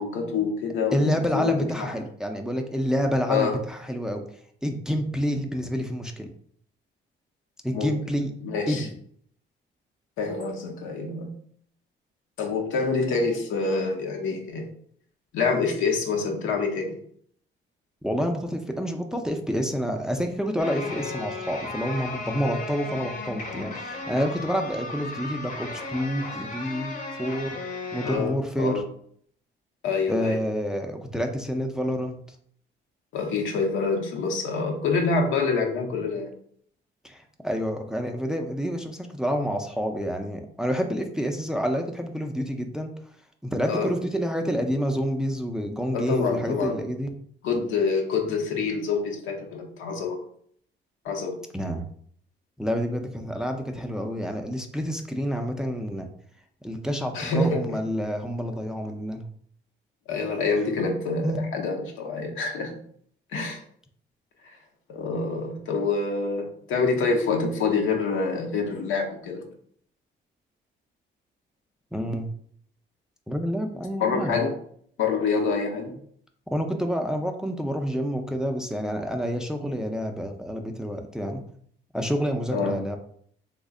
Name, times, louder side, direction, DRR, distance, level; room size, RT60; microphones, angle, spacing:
voice 1, 0.0-1.9 3.3-3.5 7.7-8.1 8.4-8.9 10.2-11.3 12.4-14.7 15.3-17.0 28.0-28.8 29.8-30.4 33.1-36.3 43.7-43.9 45.9-46.8 47.4-50.2 51.0-51.4 57.1-57.6 60.1-62.7 63.3-63.6 64.9-69.4 74.0-74.5 75.0-75.9 82.5-82.8, left 4 dB, 85° left, 2 dB, 0.7 m, -26 dB
voice 2, 0.9-4.2 4.6-6.3 7.6-8.3 8.7-8.9 18.0-27.6 27.9-28.8 30.1-32.2 37.0-42.9 43.4-47.1 51.5-51.9 52.6-56.1 56.6-59.2 61.2-61.7 71.9-72.3 73.3-74.4 76.5-81.4 81.9-83.0, equal, 5° right, 4 dB, 0.4 m, -28 dB
sound 1, 20.6-28.2, left 3 dB, 40° left, 0.7 m, -35 dB
3.2 x 2.1 x 3.6 m, 0.62 s
cardioid pair, 90°, 20 cm